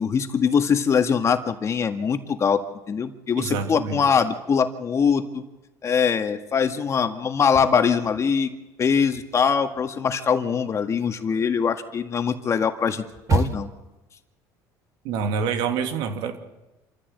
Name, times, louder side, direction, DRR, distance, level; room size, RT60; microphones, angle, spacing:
voice 1, 0.0-2.6 2.9-5.4 5.8-8.5 8.8-13.0 13.3-13.7, left 6 dB, 35° left, 7 dB, 1.9 m, -22 dB
voice 2, 3.4-4.0 15.0-16.4, right 6 dB, 75° right, 6 dB, 2.9 m, -27 dB
sound 1, 7.3-8.5 8.8-13.9, right 4 dB, 40° right, 2.1 m, -31 dB
27.5 x 14.5 x 8.2 m, 1.0 s
supercardioid pair, 105°, 8 cm